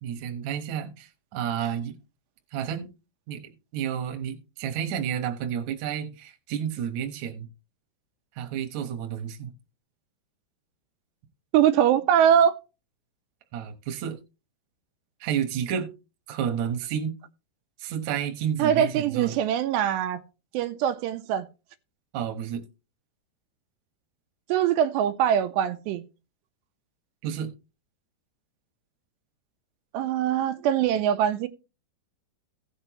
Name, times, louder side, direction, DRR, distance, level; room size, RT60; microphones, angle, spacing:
voice 1, 0.0-1.9 2.5-2.9 3.3-7.5 8.4-9.5 13.5-14.2 15.2-15.9 16.3-17.1 17.8-19.4 22.1-22.6 27.2-27.5, right 8 dB, 65° right, 1.9 m, -31 dB
voice 2, 11.5-12.6 18.6-20.2 20.5-21.5 24.5-26.0 29.9-31.5, right 9 dB, 85° right, 2.9 m, -22 dB
16.5 x 6.6 x 3.0 m
omnidirectional pair, 4.8 m